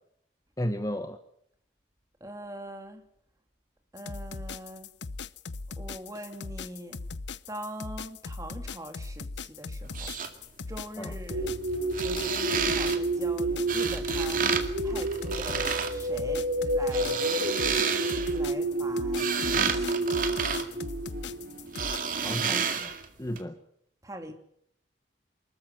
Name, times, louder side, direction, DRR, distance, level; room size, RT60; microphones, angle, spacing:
voice 1, 0.6-1.2 11.0-11.1 22.2-22.9 23.2-23.5, equal, 20° left, 9 dB, 1.1 m, -33 dB
voice 2, 2.2-3.0 3.9-4.9 5.8-7.0 7.5-10.1 10.7-11.6 12.0-14.5 14.8-17.3 18.3-19.9 24.0-24.3, right 1 dB, 20° right, 6 dB, 2.6 m, -42 dB
sound 1, 4.0-22.0, left 4 dB, 75° left, 0.8 m, -39 dB
sound 2, 9.8-10.3 11.8-13.0 13.7-14.6 14.9-15.9 16.7-18.4 18.9-21.3 21.7-23.1 23.4-23.5, right 6 dB, 45° right, 2.2 m, -30 dB
sound 3, 11.3-22.3, right 2 dB, 75° right, 3.0 m, -30 dB
24.5 x 14.0 x 9.2 m, 0.69 s
head